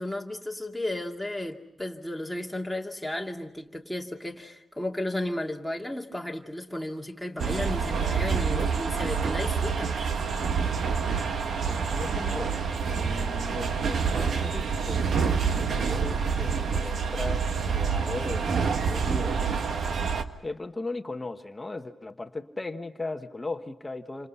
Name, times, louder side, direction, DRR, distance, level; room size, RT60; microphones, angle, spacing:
voice 1, 0.0-10.0 14.2-14.3, left 1 dB, ahead, 0 dB, 2.5 m, -34 dB
sound 1, 7.4-20.2, right 5 dB, 65° right, 1.5 m, -27 dB
voice 2, 11.1-12.6 12.9-19.7 20.4-24.3, left 2 dB, 20° left, 6 dB, 1.2 m, -38 dB
28.5 x 26.5 x 5.7 m, 0.87 s
wide cardioid pair, 130°, 0 cm